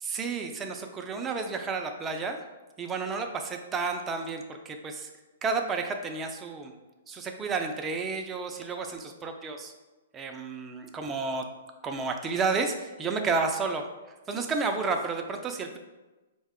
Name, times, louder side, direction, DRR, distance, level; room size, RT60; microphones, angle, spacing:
voice 1, 0.0-2.4 2.8-5.1 5.4-6.7 7.1-9.7 10.1-11.4 11.8-13.9 14.3-15.8, right 4 dB, 15° right, 4 dB, 0.4 m, -31 dB
4.6 x 2.1 x 3.6 m, 1.1 s
hypercardioid pair, 150°, 0 cm